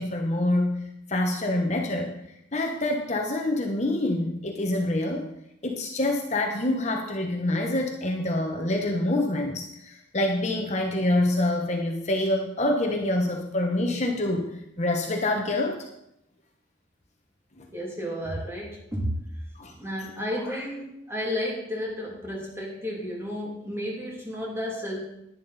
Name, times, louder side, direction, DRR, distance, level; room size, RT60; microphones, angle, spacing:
voice 1, 0.0-2.2 2.5-5.3 5.6-14.5 14.8-15.8 17.6-17.7 19.5-19.7, left 1 dB, 35° left, 2 dB, 1.1 m, -26 dB
voice 2, 17.7-19.2 19.8-25.1, equal, 15° right, -2 dB, 2.7 m, -32 dB
11.0 x 10.5 x 4.1 m, 0.78 s
head